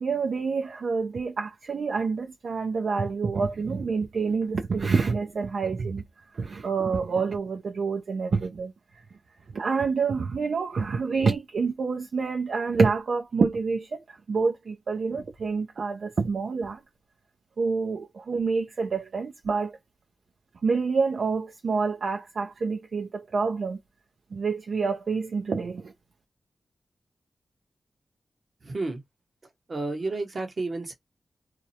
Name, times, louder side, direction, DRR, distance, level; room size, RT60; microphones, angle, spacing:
voice 1, 0.0-6.0 6.3-8.7 9.5-16.8 17.6-19.7 20.6-23.8 24.3-25.9, right 4 dB, 70° right, 0.4 m, -27 dB
voice 2, 28.6-29.0 29.7-30.9, right 3 dB, 50° right, 1.0 m, -31 dB
2.3 x 2.0 x 2.8 m
cardioid pair, 55°, 0 cm